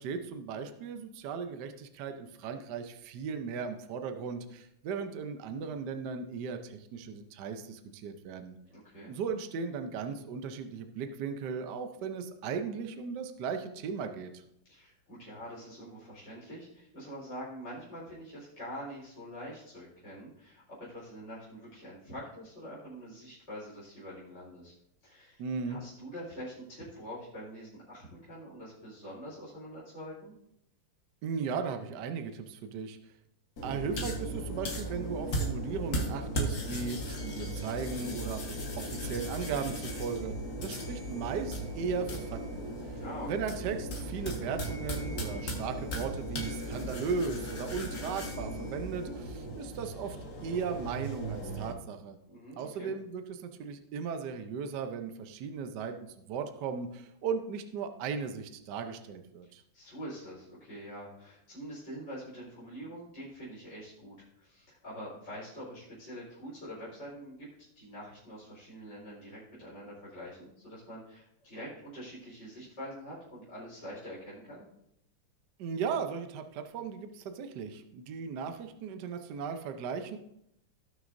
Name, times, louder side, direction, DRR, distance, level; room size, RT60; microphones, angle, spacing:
voice 1, 0.0-8.6 9.1-14.4 25.4-25.8 31.2-33.0 33.6-52.2 52.6-55.9 56.3-59.6 75.6-80.2, right 5 dB, 65° right, 7 dB, 1.1 m, -37 dB
voice 2, 8.7-9.1 14.7-24.7 25.0-30.3 43.0-43.5 52.3-52.9 59.7-67.5 67.8-74.7, equal, 30° left, -9 dB, 4.4 m, -45 dB
sound 1, 33.6-51.7, right 1 dB, 45° left, 1.8 m, -37 dB
17.5 x 6.3 x 2.6 m, 0.78 s
omnidirectional pair, 2.4 m